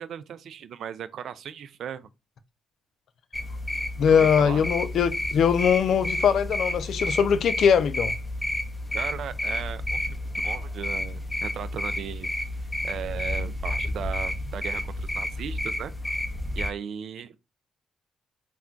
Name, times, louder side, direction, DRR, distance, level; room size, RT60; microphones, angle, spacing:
voice 1, 0.0-2.1 4.0-4.6 8.9-12.3 12.8-15.9 16.6-17.4, right 8 dB, 65° right, 0.3 m, -37 dB
sound 1, 3.3-16.7, left 1 dB, 10° left, 0.6 m, -31 dB
voice 2, 4.0-8.1, left 7 dB, 65° left, 0.3 m, -21 dB
2.2 x 2.2 x 3.7 m
cardioid pair, 90°, 0 cm